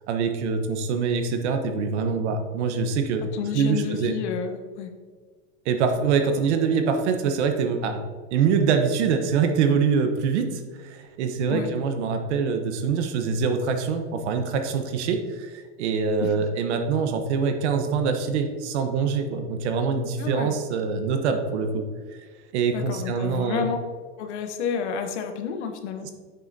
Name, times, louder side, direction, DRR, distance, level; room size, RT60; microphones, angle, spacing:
voice 1, 0.1-3.3 3.5-4.1 5.6-8.0 8.3-21.8 22.5-23.7, right 5 dB, 70° right, 6 dB, 1.1 m, -24 dB
voice 2, 3.3-4.9 11.5-11.7 16.2-16.5 20.2-20.5 22.7-23.8 24.2-26.1, left 7 dB, 70° left, 6 dB, 1.1 m, -30 dB
8.1 x 6.5 x 2.8 m, 1.6 s
supercardioid pair, 135°, 35 cm